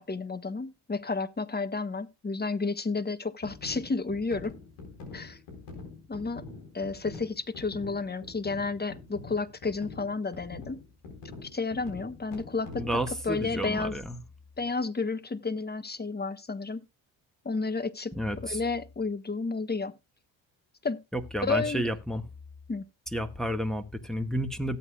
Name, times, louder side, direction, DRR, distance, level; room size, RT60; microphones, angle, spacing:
voice 1, 0.0-4.5 5.1-5.4 6.1-6.5 6.7-10.8 11.4-12.9 13.2-13.9 14.6-16.8 17.4-19.9 20.8-21.0 21.4-21.9 22.7-22.8, left 4 dB, 20° left, 1.3 m, -31 dB
sound 1, 3.4-13.1, left 3 dB, 85° left, 4.3 m, -45 dB
voice 2, 12.8-14.2 18.2-18.6 21.1-22.2 23.1-24.8, equal, ahead, 1.6 m, -31 dB
17.0 x 8.4 x 2.3 m
supercardioid pair, 55°, 49 cm